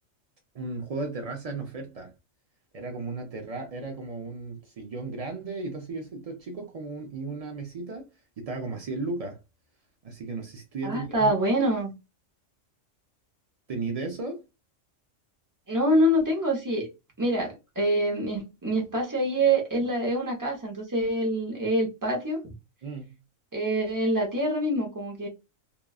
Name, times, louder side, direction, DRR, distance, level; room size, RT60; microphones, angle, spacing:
voice 1, 0.5-2.1 2.7-8.1 8.4-9.4 10.0-11.7 13.7-14.4 22.8-23.2, right 3 dB, 80° right, 0.3 m, -35 dB
voice 2, 10.8-11.9 15.7-16.9 17.2-22.5 23.5-25.3, right 1 dB, 20° right, 0.7 m, -25 dB
3.0 x 2.3 x 2.3 m
omnidirectional pair, 1.4 m